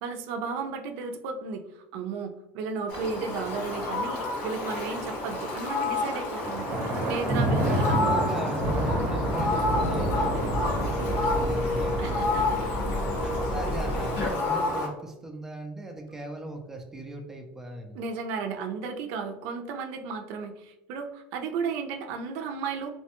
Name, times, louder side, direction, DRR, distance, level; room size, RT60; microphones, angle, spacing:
voice 1, 0.0-8.1 8.4-8.5 12.0-12.4 17.9-22.9, right 5 dB, 75° right, 5 dB, 0.4 m, -34 dB
Fowl, 2.9-14.9, left 2 dB, 60° left, 0.9 m, -30 dB
Thunder, 6.4-11.6, right 1 dB, 40° right, 0.7 m, -29 dB
voice 2, 7.5-12.4 13.2-18.0, right 1 dB, 10° right, 3 dB, 0.4 m, -38 dB
sound 1, 8.6-14.3, equal, 85° left, 1.3 m, -30 dB
3.1 x 2.1 x 2.9 m, 0.91 s
cardioid pair, 155°, 4 cm